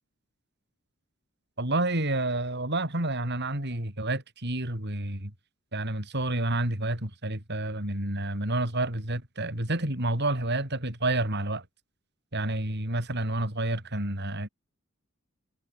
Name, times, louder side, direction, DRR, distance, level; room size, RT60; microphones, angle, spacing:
voice 1, 1.6-5.3 5.7-11.6 12.3-14.5, right 2 dB, 55° right, 5.9 m, -29 dB
head